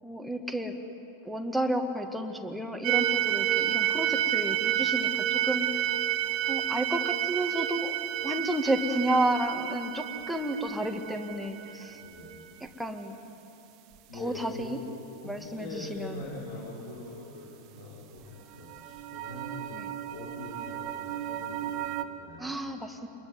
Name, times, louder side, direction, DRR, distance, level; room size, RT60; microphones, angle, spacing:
voice 1, 0.0-0.8 1.2-5.7 6.5-7.9 8.2-12.0 12.6-13.2 14.1-14.8 15.2-16.2 19.7-19.9 22.4-23.1, right 1 dB, ahead, 3 dB, 2.0 m, -31 dB
sound 1, 2.8-12.4 18.5-22.0, right 12 dB, 40° right, 1.4 m, -30 dB
voice 2, 12.0-12.4 14.1-14.6 15.2-22.6, left 2 dB, 60° left, -6 dB, 6.3 m, -43 dB
26.5 x 21.5 x 9.8 m, 2.9 s
figure-of-eight pair, 90°, 0 cm